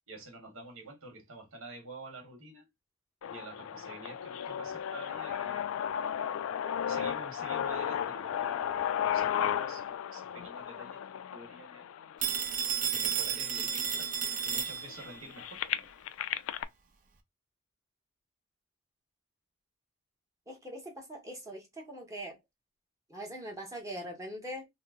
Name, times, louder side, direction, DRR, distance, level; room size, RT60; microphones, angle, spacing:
voice 1, 0.1-2.7 3.3-5.7 6.8-11.9 12.9-14.1 14.4-15.9, right 2 dB, 80° right, 1.1 m, -48 dB
sound 1, 3.2-13.2 13.8-13.9 14.2-16.6, left 9 dB, 80° left, 0.3 m, -34 dB
Telephone, 12.2-15.2, right 7 dB, 40° right, 0.5 m, -32 dB
voice 2, 20.5-22.4 23.1-24.7, equal, 15° right, 0.9 m, -42 dB
2.9 x 2.0 x 3.5 m
head